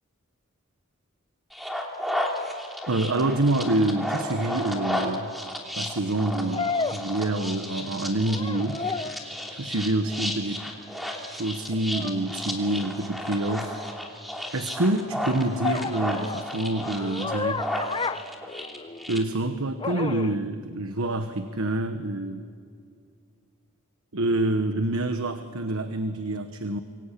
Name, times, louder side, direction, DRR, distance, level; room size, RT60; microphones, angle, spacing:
sound 1, 1.5-19.2, left 1 dB, ahead, 3.0 m, -33 dB
voice 1, 2.9-5.3 5.7-8.8 9.5-10.7 11.3-13.8 14.5-17.7 19.1-22.5 24.1-26.8, right 2 dB, 75° right, 8 dB, 1.2 m, -27 dB
sound 2, 6.5-7.8 8.2-9.3 11.9-12.2 15.6-19.1 19.8-20.4, left 4 dB, 25° left, 0.7 m, -32 dB
27.5 x 24.0 x 8.4 m, 2.3 s
head